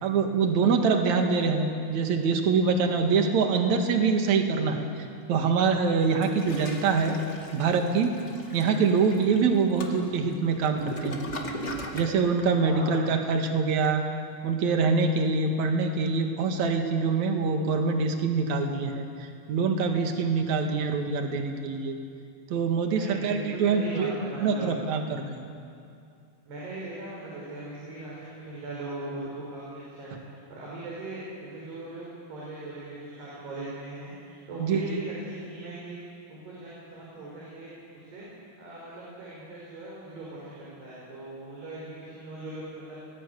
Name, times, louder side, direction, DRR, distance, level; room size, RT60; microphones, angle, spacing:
voice 1, 0.0-4.9 5.3-7.2 7.5-8.1 8.5-11.2 11.9-14.0 14.4-22.0 22.5-25.4 30.1-30.2 34.6-34.8, right 5 dB, 50° right, 4 dB, 2.9 m, -25 dB
Toilet flush, 6.0-12.2, equal, 25° left, 1.7 m, -38 dB
voice 2, 12.6-13.1 22.9-24.7 26.5-30.2 30.5-36.0 36.3-38.3 38.6-43.0, right 2 dB, 90° right, -6 dB, 7.8 m, -39 dB
30.0 x 20.5 x 8.4 m, 2.5 s
omnidirectional pair, 4.6 m